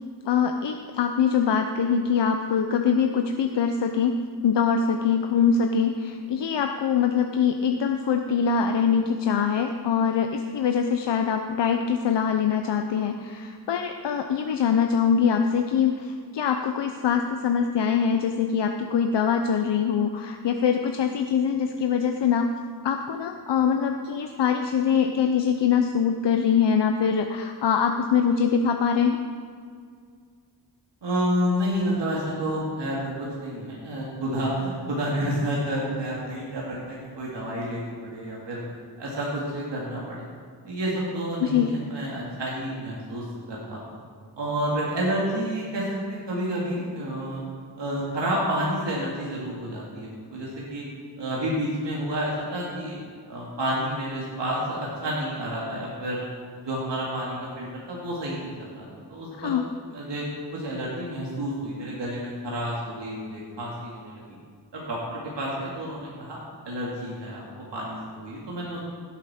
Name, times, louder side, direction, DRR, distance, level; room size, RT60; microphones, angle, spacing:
voice 1, 0.2-4.1 4.4-22.5 22.8-29.2 41.4-41.7 59.4-59.7, left 7 dB, 80° left, 5 dB, 0.7 m, -23 dB
voice 2, 31.0-38.6 39.0-40.2 40.6-43.9 44.3-47.4 47.8-50.8 51.2-53.0 53.3-56.3 56.6-59.5 59.9-60.2 60.5-64.2 64.7-66.4 66.6-67.4 67.7-68.8, equal, 85° right, -5 dB, 2.3 m, -30 dB
16.5 x 8.4 x 4.3 m, 2.1 s
wide cardioid pair, 95°, 42 cm